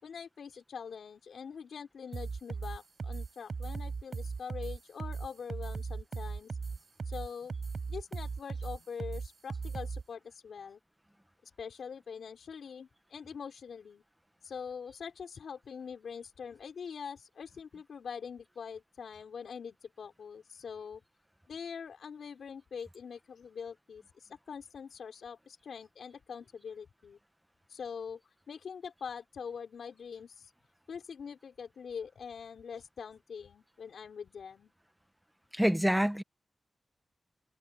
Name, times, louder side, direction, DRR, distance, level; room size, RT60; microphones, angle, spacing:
voice 1, 0.0-6.6 7.0-7.5 7.9-10.8 11.4-14.0 14.4-21.0 21.5-27.2 27.7-30.5 30.9-34.7, left 6 dB, 85° left, 5.5 m, -44 dB
sound 1, 2.1-10.0, right 4 dB, 60° right, 5.7 m, -37 dB
voice 2, 35.5-36.2, equal, 5° right, 1.7 m, -26 dB
cardioid pair, 65°, 0 cm